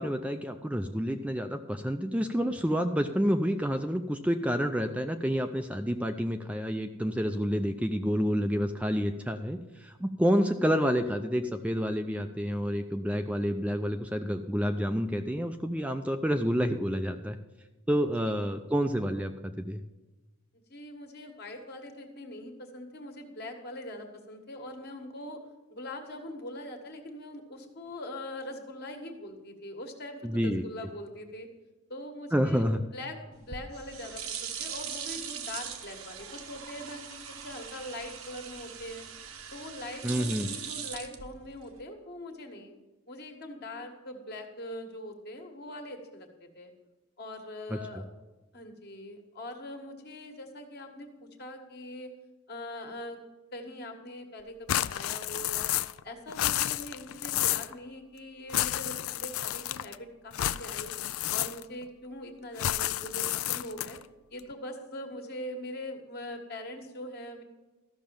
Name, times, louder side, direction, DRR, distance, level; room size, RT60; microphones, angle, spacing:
voice 1, 0.0-17.4 17.9-19.8 30.2-30.6 32.3-32.8 40.0-40.5 47.7-47.8, equal, 5° right, 6 dB, 0.4 m, -29 dB
voice 2, 20.7-25.4 25.7-31.5 31.9-39.1 39.5-42.7 43.1-46.7 47.2-48.1 48.5-52.1 52.5-53.2 53.5-55.7 56.0-61.0 61.3-64.0 64.3-67.4, left 1 dB, 50° left, 3 dB, 1.7 m, -42 dB
sound 1, 33.3-41.8, right 7 dB, 85° right, 1.2 m, -40 dB
sound 2, 54.7-56.0 56.3-57.7 58.5-60.0 60.3-61.8 62.6-64.0, left 13 dB, 80° left, 0.4 m, -31 dB
13.5 x 6.3 x 7.1 m, 1.1 s
head